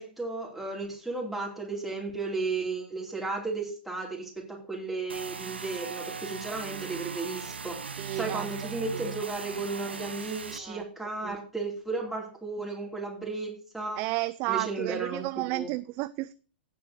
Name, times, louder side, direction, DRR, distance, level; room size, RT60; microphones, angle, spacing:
voice 1, 0.0-14.0 14.5-15.7, right 3 dB, ahead, 2.7 m, -34 dB
sound 1, 5.1-10.6, right 5 dB, 90° right, 1.2 m, -39 dB
voice 2, 8.0-8.7 8.9-9.1 10.6-10.8 11.2-11.4 14.0-16.3, right 20 dB, 35° right, 0.5 m, -32 dB
16.0 x 7.6 x 2.8 m
hypercardioid pair, 120°, 6 cm